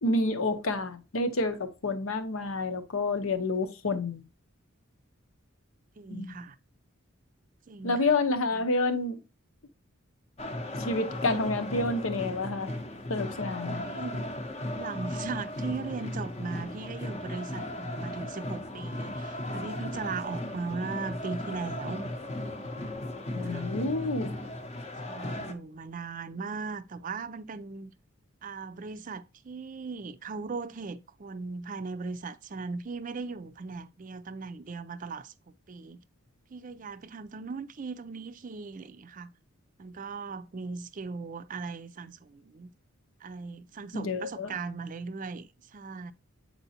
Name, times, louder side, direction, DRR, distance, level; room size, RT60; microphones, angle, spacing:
voice 1, 0.0-4.2 6.1-6.3 7.8-9.2 10.8-12.7 13.1-13.9 23.3-24.3 43.9-44.5, left 2 dB, 80° left, 0.9 m, -29 dB
voice 2, 6.0-6.6 7.7-8.0 13.8-14.3 14.8-22.1 23.4-23.6 25.1-27.9 28.4-35.3 35.7-36.0 36.5-39.3 39.8-42.7 43.2-46.1, right 4 dB, 40° right, 0.4 m, -38 dB
sound 1, 10.4-25.5, left 1 dB, 30° left, 0.7 m, -36 dB
8.0 x 4.4 x 2.8 m
head